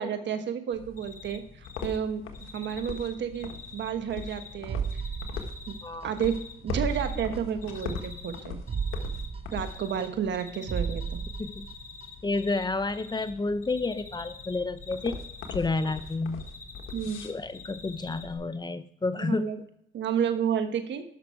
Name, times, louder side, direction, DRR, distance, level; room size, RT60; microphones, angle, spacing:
voice 1, 0.0-2.2 2.5-4.8 5.7-5.8 6.0-8.6 9.5-11.2 16.9-17.2 19.1-19.6 19.9-21.0, right 8 dB, 65° right, 8 dB, 1.3 m, -31 dB
sound 1, 0.7-18.3, left 4 dB, 90° left, 1.4 m, -42 dB
Cricket, 1.0-1.4 1.6-2.0 2.3-4.5 4.8-6.5 6.8-7.2 7.6-8.4 8.7-10.1 10.3-12.6 12.9-13.3 13.6-16.1 16.4-18.2, left 5 dB, 45° left, 1.5 m, -46 dB
sound 2, 4.7-6.1 6.3-6.4 6.7-8.1 8.3-8.4 8.7-10.4 10.7-12.1 12.3-12.4, right 6 dB, 30° right, 0.5 m, -34 dB
voice 2, 12.2-15.2 15.5-16.4 17.2-19.5, left 3 dB, 20° left, 12 dB, 0.6 m, -30 dB
11.5 x 6.0 x 4.7 m, 0.73 s
cardioid pair, 90°, 20 cm